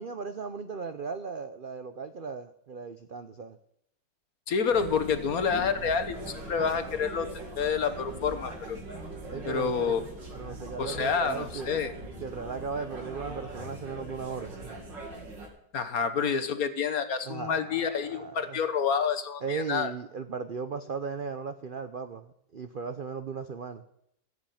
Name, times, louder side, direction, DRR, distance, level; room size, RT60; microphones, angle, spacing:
voice 1, 0.0-3.6 9.3-10.0 10.3-11.8 12.2-14.7 17.2-18.6 19.4-23.8, right 5 dB, 60° right, 9 dB, 0.5 m, -37 dB
voice 2, 4.5-7.3 7.6-8.8 9.4-10.0 10.8-11.9 15.7-19.9, left 6 dB, 55° left, 10 dB, 1.5 m, -28 dB
sound 1, 4.7-15.5, right 2 dB, 85° right, 3.4 m, -41 dB
15.0 x 8.1 x 9.1 m, 0.76 s
omnidirectional pair, 1.9 m